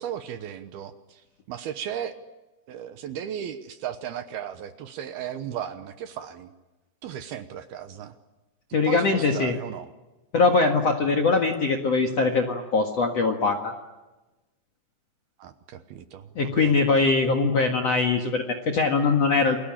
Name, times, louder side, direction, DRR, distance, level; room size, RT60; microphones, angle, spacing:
voice 1, 0.0-2.2 2.7-6.5 7.0-8.2 8.8-9.9 15.4-17.1, right 9 dB, 70° right, 9 dB, 2.6 m, -36 dB
voice 2, 8.7-9.6 10.3-13.7 16.4-19.6, left 4 dB, 55° left, 3 dB, 1.9 m, -22 dB
29.5 x 22.0 x 8.8 m, 1.1 s
omnidirectional pair, 5.3 m